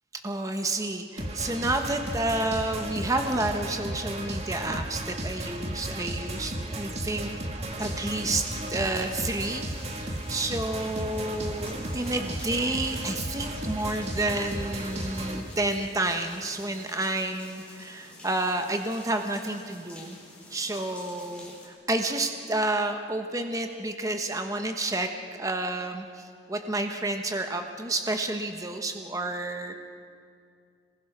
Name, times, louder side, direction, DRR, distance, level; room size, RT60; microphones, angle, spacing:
voice 1, 0.1-7.3 7.8-9.7 9.9-20.2 20.5-25.1 25.4-29.7, right 2 dB, 20° right, 5 dB, 1.1 m, -30 dB
sound 1, 1.2-15.4, right 1 dB, 35° right, 1.9 m, -34 dB
sound 2, 7.8-21.7, left 2 dB, 5° left, 4.7 m, -48 dB
27.0 x 20.5 x 6.1 m, 2.3 s
head